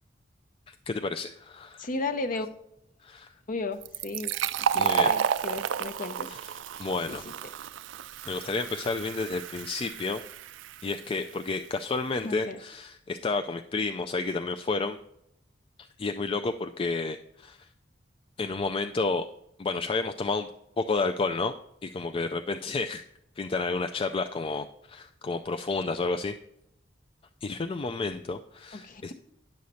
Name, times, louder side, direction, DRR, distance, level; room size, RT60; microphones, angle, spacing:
voice 1, 0.7-1.9 3.0-3.3 4.7-5.1 6.3-7.2 8.3-10.2 10.8-15.0 15.8-17.6 18.4-19.3 19.6-20.5 20.8-21.5 21.8-23.0 23.4-26.4 27.4-29.1, left 3 dB, 30° left, 6 dB, 0.3 m, -31 dB
voice 2, 1.8-2.5 3.5-4.3 4.7-6.4 7.1-7.2 12.2-12.6 28.7-29.1, left 3 dB, 50° left, 10 dB, 0.7 m, -34 dB
Fill (with liquid), 3.8-11.2, right 8 dB, 90° right, 0.4 m, -31 dB
10.5 x 6.4 x 4.1 m, 0.80 s
head